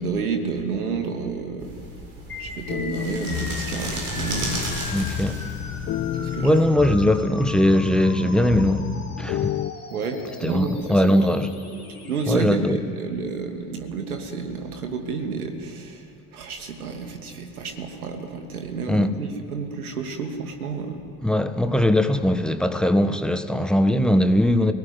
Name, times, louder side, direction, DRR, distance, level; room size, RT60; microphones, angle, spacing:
voice 1, 0.0-1.7 2.4-4.7 6.2-6.6 9.9-11.3 12.1-16.0 16.3-21.0, right 4 dB, 75° right, 2.7 m, -30 dB
sound 1, 1.6-6.6, right 2 dB, 45° right, 7.6 m, -34 dB
sound 2, 2.3-12.3, left 3 dB, 85° left, 3.0 m, -39 dB
sound 3, 2.7-9.7, left 12 dB, 30° left, 0.7 m, -31 dB
voice 2, 4.9-5.3 6.4-8.9 9.2-9.6 10.4-11.5 12.3-12.8 18.9-19.1 21.2-24.7, left 1 dB, ahead, 1.4 m, -20 dB
23.0 x 18.5 x 9.7 m
figure-of-eight pair, 65°, 44 cm